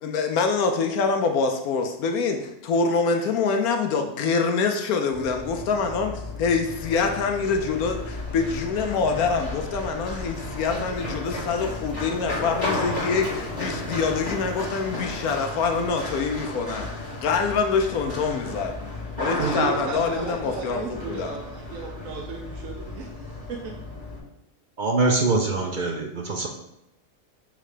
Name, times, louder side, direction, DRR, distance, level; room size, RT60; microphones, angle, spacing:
voice 1, 0.0-18.7 19.2-21.4, left 4 dB, 80° left, 1.1 m, -25 dB
Run, 5.1-24.2, left 2 dB, 30° left, 1.9 m, -34 dB
voice 2, 19.4-23.1 23.5-23.7, right 5 dB, 70° right, 1.1 m, -33 dB
voice 3, 24.8-26.5, right 3 dB, 50° right, 0.5 m, -23 dB
6.4 x 3.3 x 4.9 m
omnidirectional pair, 1.6 m